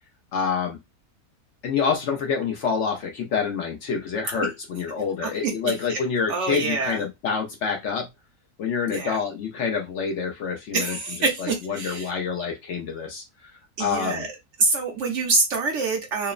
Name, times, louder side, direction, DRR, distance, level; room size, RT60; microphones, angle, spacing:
voice 1, 0.3-0.8 1.6-8.1 8.6-10.9 11.4-13.5 13.8-14.3, left 6 dB, 65° left, 0.8 m, -27 dB
voice 2, 5.2-6.0 6.3-7.0 8.9-9.2 10.7-12.1 13.8-14.3 14.6-16.3, right 3 dB, 65° right, 0.8 m, -26 dB
3.0 x 2.0 x 2.3 m
omnidirectional pair, 1.5 m